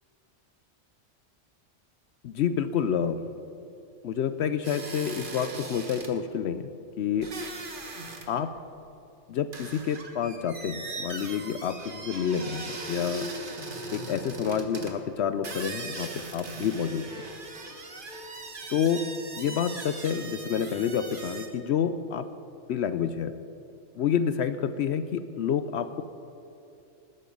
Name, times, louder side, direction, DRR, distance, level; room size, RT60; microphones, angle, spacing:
voice 1, 2.2-3.3 4.0-6.7 7.0-7.3 8.3-8.5 9.3-13.3 13.9-17.1 18.7-19.0 19.4-22.3 22.7-23.3 24.0-26.0, left 8 dB, 70° left, 11 dB, 0.8 m, -28 dB
sound 1, 4.6-6.1 7.2-8.3 8.6-8.7 9.5-14.9 15.4-21.5, right 2 dB, 45° right, 1.5 m, -39 dB
20.0 x 9.7 x 5.3 m, 2.6 s
omnidirectional pair, 1.2 m